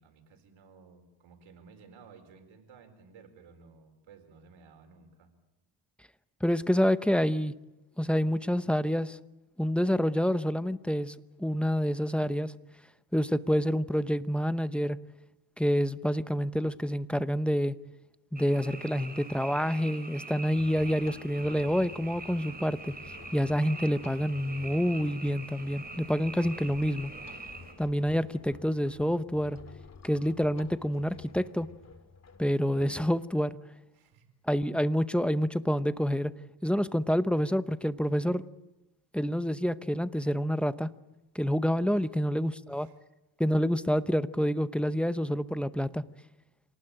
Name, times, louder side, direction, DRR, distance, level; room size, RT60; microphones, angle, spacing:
voice 1, 0.0-5.3 33.9-34.3 41.9-42.1 42.7-43.0, right 5 dB, 85° right, 5 dB, 4.6 m, -55 dB
voice 2, 6.4-7.5 8.0-9.2 9.6-12.5 13.1-15.0 15.6-17.7 18.3-22.9 23.3-27.1 27.8-29.6 30.0-31.7 32.4-33.6 34.5-36.3 36.6-38.4 39.1-40.9 41.3-42.9 43.4-46.0, equal, ahead, 13 dB, 0.8 m, -28 dB
Frog, 18.4-27.7, right 3 dB, 20° right, 4.3 m, -44 dB
sound 1, 20.6-32.9, left 5 dB, 35° left, 2.5 m, -51 dB
27.0 x 19.0 x 9.0 m, 1.0 s
cardioid pair, 105°, 46 cm